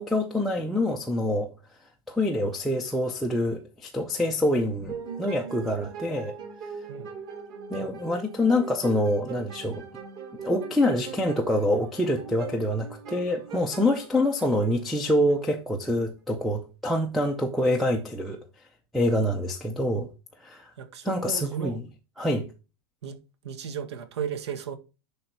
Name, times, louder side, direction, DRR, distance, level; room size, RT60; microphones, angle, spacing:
voice 1, 0.0-1.5 2.1-6.4 7.7-9.8 10.4-18.4 18.9-20.1 20.4-20.7 21.0-21.8 22.2-22.5, left 1 dB, ahead, 0.5 m, -26 dB
sound 1, 4.9-15.4, right 6 dB, 25° right, 1.5 m, -41 dB
voice 2, 20.8-21.8 23.0-23.2 23.4-24.8, right 7 dB, 70° right, 1.8 m, -34 dB
10.5 x 3.9 x 4.5 m
supercardioid pair, 175°, 15 cm